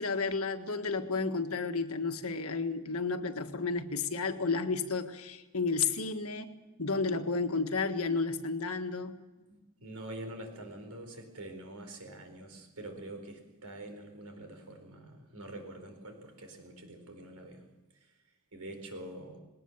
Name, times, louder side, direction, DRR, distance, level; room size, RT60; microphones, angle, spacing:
voice 1, 0.0-6.5 6.8-9.2, left 4 dB, 75° left, 7 dB, 1.6 m, -32 dB
voice 2, 9.5-17.7 18.0-18.1 18.5-19.4, right 1 dB, 90° right, 5 dB, 4.6 m, -45 dB
20.0 x 19.0 x 7.3 m, 1.1 s
head